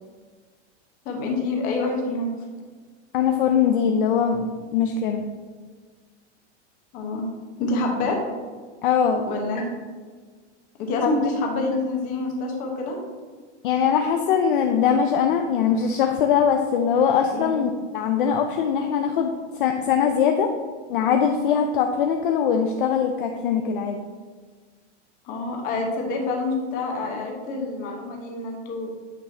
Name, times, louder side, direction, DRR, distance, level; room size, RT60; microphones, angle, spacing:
voice 1, 1.0-2.3 6.9-7.3 7.6-8.2 9.2-9.8 10.8-13.0 17.3-17.5 25.3-28.9, left 2 dB, 25° left, 0 dB, 1.0 m, -27 dB
voice 2, 3.1-5.2 8.8-9.2 11.0-11.3 13.6-20.5 20.9-24.0, left 7 dB, 50° left, 4 dB, 0.5 m, -22 dB
9.1 x 4.9 x 2.7 m, 1.5 s
supercardioid pair, 170°, 35 cm